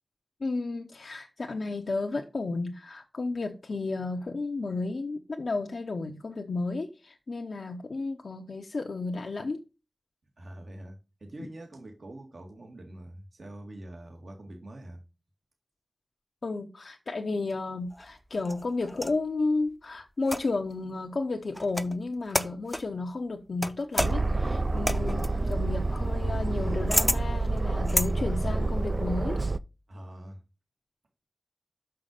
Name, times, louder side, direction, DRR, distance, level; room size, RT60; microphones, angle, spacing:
voice 1, 0.4-9.6 11.4-11.5 16.4-29.4, left 3 dB, 70° left, 0.9 m, -32 dB
voice 2, 10.4-15.0 29.9-30.4, right 1 dB, 70° right, 1.9 m, -45 dB
sound 1, 17.9-19.2 20.2-20.7 21.5-22.0 22.3-22.9 23.6-28.1, left 1 dB, 10° left, 0.7 m, -31 dB
Aircraft, 24.0-29.6, right 2 dB, 45° right, 0.5 m, -28 dB
6.2 x 5.7 x 6.6 m
wide cardioid pair, 55°, 0 cm